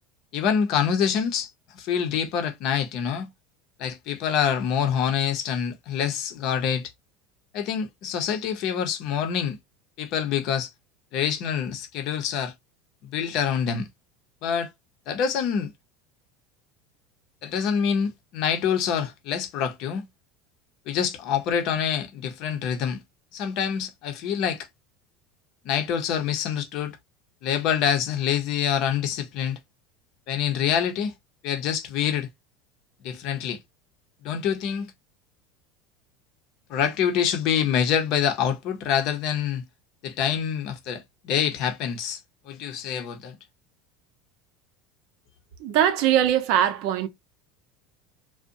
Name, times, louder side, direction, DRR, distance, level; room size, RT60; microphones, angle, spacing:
voice 1, 0.3-3.3 3.8-6.9 7.5-9.6 10.0-10.7 11.1-12.5 13.0-13.9 14.4-14.7 15.1-15.7 17.4-20.1 20.9-23.0 23.3-24.7 25.6-27.0 27.4-29.6 30.3-31.1 31.4-32.3 33.0-33.6 34.2-34.9 36.7-39.6 40.0-42.2 42.5-43.4, left 8 dB, 60° left, 0.6 m, -26 dB
voice 2, 45.6-47.1, right 10 dB, 65° right, 0.6 m, -21 dB
2.5 x 2.1 x 2.6 m
supercardioid pair, 115°, 0 cm